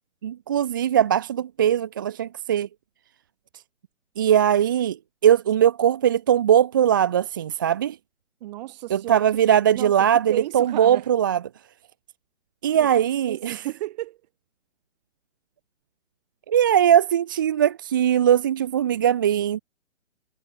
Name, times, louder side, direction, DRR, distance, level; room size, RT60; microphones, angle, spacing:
voice 1, 0.2-2.7 4.2-5.0 5.2-8.0 8.9-11.4 12.6-13.6 16.5-19.6, right 9 dB, 15° right, 0.5 m, -20 dB
voice 2, 8.4-9.3 9.7-9.9 10.3-11.1 12.8-12.9 13.3-14.2, right 16 dB, 35° right, 5.4 m, -33 dB
figure-of-eight pair, 130°, 38 cm